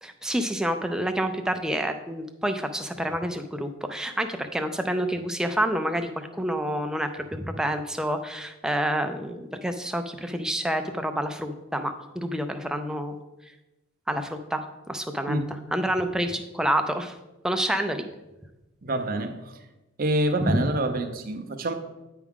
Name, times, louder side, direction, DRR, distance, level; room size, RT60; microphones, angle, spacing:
voice 1, 0.0-13.2 14.1-14.6 14.9-15.4 15.7-17.1 17.4-18.0 20.4-20.6, right 1 dB, 5° right, 0.4 m, -28 dB
voice 2, 18.8-19.5 20.0-21.7, right 1 dB, 40° right, 0.6 m, -27 dB
9.2 x 4.7 x 3.6 m
head